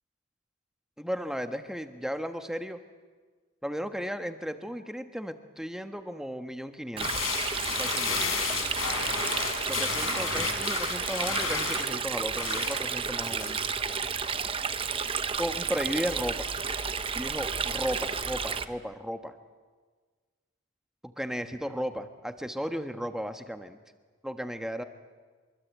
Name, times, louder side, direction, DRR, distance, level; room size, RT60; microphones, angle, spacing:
voice 1, 1.0-2.8 3.6-7.3 7.8-8.2 9.6-13.6 15.4-16.5 17.1-19.3 21.0-23.8 24.2-24.8, equal, 5° right, 7 dB, 1.3 m, -35 dB
sound 1, 7.0-18.6, left 5 dB, 85° left, 4.8 m, -34 dB
Stream, 7.0-18.6, right 6 dB, 25° right, 0.9 m, -32 dB
25.0 x 23.5 x 8.4 m, 1.5 s
head